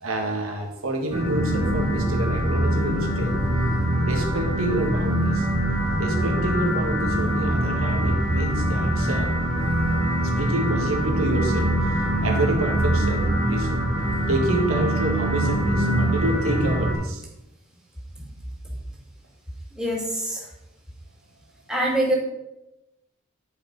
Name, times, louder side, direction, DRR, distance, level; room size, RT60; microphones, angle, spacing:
voice 1, 0.0-3.4 4.0-5.5 6.0-9.3 10.4-13.8 14.3-17.2, right 1 dB, 85° right, 2 dB, 1.7 m, -28 dB
sound 1, 1.1-16.9, right 1 dB, 25° right, 2.6 m, -23 dB
voice 2, 19.8-20.4 21.7-22.1, right 1 dB, 5° right, -3 dB, 2.3 m, -24 dB
11.0 x 5.1 x 5.2 m, 0.92 s
head